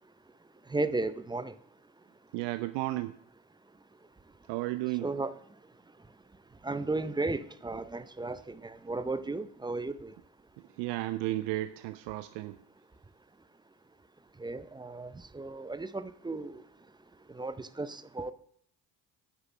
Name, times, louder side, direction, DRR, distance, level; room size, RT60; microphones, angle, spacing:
voice 1, 0.7-1.6 5.0-5.3 6.6-10.1 14.4-16.6 17.3-18.3, right 3 dB, 10° right, 14 dB, 0.5 m, -34 dB
voice 2, 2.3-3.2 4.5-5.1 10.8-12.6, right 17 dB, 60° right, 12 dB, 0.6 m, -33 dB
9.5 x 6.2 x 6.1 m, 0.67 s
hypercardioid pair, 50°, 49 cm